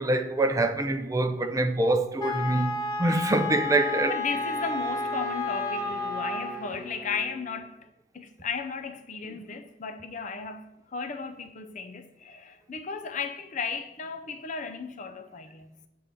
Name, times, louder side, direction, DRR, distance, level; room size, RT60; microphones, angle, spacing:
voice 1, 0.0-4.1, right 2 dB, 15° right, 0.5 m, -25 dB
Wind instrument woodwind instrument, 2.2-6.7, left 3 dB, 20° left, 0.9 m, -31 dB
voice 2, 4.1-7.8 8.1-15.7, left 5 dB, 40° left, 0.6 m, -35 dB
Wind instrument woodwind instrument 2, 4.3-7.8, right 5 dB, 55° right, 1.1 m, -44 dB
8.8 x 3.8 x 6.9 m
head